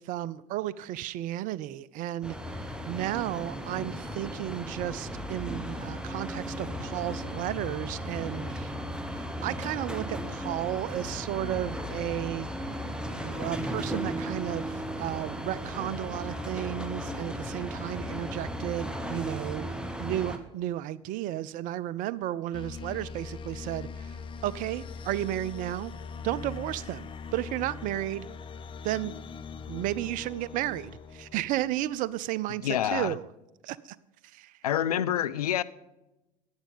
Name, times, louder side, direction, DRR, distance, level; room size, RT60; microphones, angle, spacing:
voice 1, 0.0-8.7 9.1-12.5 13.1-19.7 20.0-24.2 24.4-25.9 26.2-28.3 28.8-29.1 29.7-33.2 33.6-34.0 34.3-34.5, right 14 dB, 45° right, 20 dB, 0.5 m, -33 dB
sound 1, 2.2-20.4, equal, 5° right, 1.1 m, -36 dB
sound 2, 22.5-32.0, left 5 dB, 25° left, 0.8 m, -41 dB
voice 2, 32.6-33.2 34.6-35.6, left 11 dB, 75° left, 15 dB, 0.4 m, -27 dB
11.0 x 8.7 x 5.3 m, 0.97 s
figure-of-eight pair, 65°, 20 cm